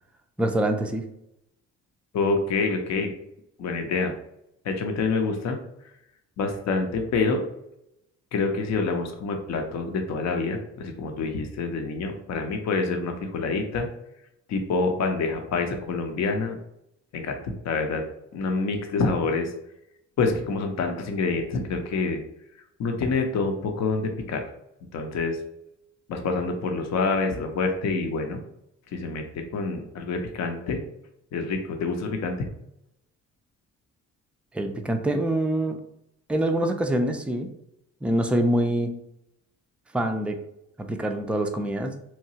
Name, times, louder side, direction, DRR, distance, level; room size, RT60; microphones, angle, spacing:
voice 1, 0.4-1.0 34.5-35.8 36.3-37.5 38.0-38.9 39.9-40.4 40.8-41.9, right 1 dB, 5° right, 5 dB, 0.3 m, -25 dB
voice 2, 2.1-3.1 3.6-4.1 4.6-5.6 6.4-7.4 8.3-13.9 14.5-16.6 17.1-17.4 17.6-18.0 18.3-19.5 20.2-22.2 22.8-24.5 24.9-25.4 26.1-28.4 28.9-30.8 31.3-32.5, left 4 dB, 60° left, 4 dB, 0.6 m, -27 dB
2.9 x 2.2 x 2.7 m, 0.81 s
cardioid pair, 90°, 30 cm